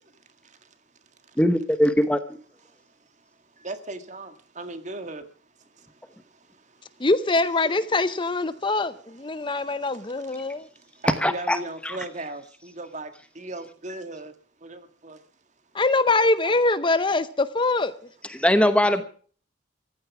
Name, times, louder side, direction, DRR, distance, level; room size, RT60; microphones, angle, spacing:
voice 1, 0.4-0.7 1.2-1.4 2.7-2.9 3.6-5.3 5.6-7.1 7.6-7.7 8.5-8.7 9.0-14.3 14.6-15.2 16.4-16.8 18.4-18.5 18.9-19.0, right 2 dB, 40° right, 1.8 m, -39 dB
voice 2, 1.4-2.2 11.2-11.6 11.8-12.0 18.3-19.0, equal, 5° left, 1.0 m, -20 dB
voice 3, 7.0-10.7 15.7-17.9, left 2 dB, 25° left, 0.7 m, -23 dB
15.0 x 13.0 x 6.1 m
head